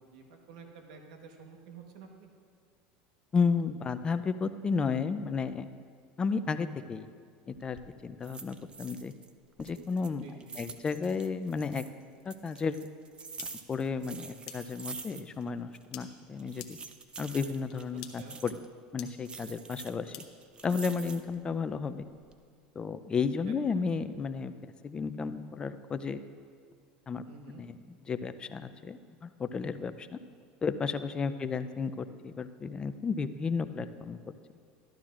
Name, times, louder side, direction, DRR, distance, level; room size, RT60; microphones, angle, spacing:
voice 1, 0.1-2.3 10.2-10.6 18.0-18.4 23.5-23.8 27.2-27.6 31.4-31.7, right 4 dB, 80° right, 3 dB, 1.1 m, -50 dB
voice 2, 3.3-5.7 6.2-7.1 7.5-9.1 9.6-10.3 10.6-11.8 12.3-12.8 13.7-16.8 17.2-18.5 18.9-20.2 20.6-22.1 22.8-24.5 24.8-26.2 27.1-27.2 27.6-27.8 28.0-30.2 30.6-34.2, left 5 dB, 25° left, 11 dB, 0.4 m, -33 dB
sound 1, 7.5-7.9 8.2-9.3 9.6-11.9 12.3-15.5 15.7-15.8 16.4-18.6 19.2-21.4 21.9-22.4, right 5 dB, 25° right, 0.5 m, -46 dB
sound 2, 13.4-13.5 14.5-14.6 15.9-16.0 16.6-16.7 17.7-17.8 18.0-18.1 19.0-19.1 20.1-20.2, left 12 dB, 85° left, 0.8 m, -42 dB
13.0 x 11.5 x 2.5 m, 2.1 s
supercardioid pair, 110°, 4 cm